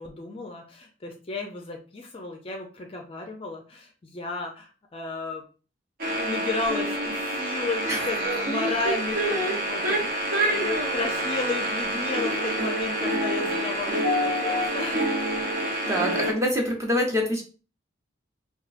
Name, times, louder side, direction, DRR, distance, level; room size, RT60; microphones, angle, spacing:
voice 1, 0.0-5.4 6.1-15.2 16.1-16.4, left 3 dB, 30° left, 2 dB, 0.4 m, -33 dB
sound 1, 6.0-16.3, right 1 dB, 50° right, 0.7 m, -27 dB
voice 2, 15.9-17.4, equal, 15° right, 0 dB, 0.8 m, -25 dB
4.3 x 2.3 x 2.5 m, 0.37 s
head